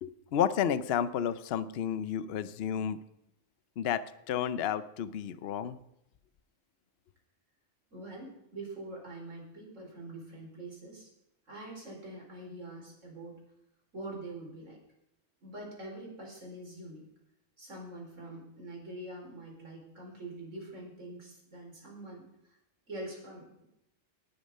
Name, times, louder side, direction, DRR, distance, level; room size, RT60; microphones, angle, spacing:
voice 1, 0.0-3.0 3.8-5.8, left 9 dB, 60° left, 15 dB, 0.8 m, -31 dB
voice 2, 7.9-11.1 11.5-13.4 13.9-14.8 15.4-17.0 17.6-22.2 22.9-23.6, right 2 dB, 90° right, -2 dB, 4.8 m, -44 dB
19.0 x 6.9 x 5.4 m, 0.83 s
omnidirectional pair, 1.3 m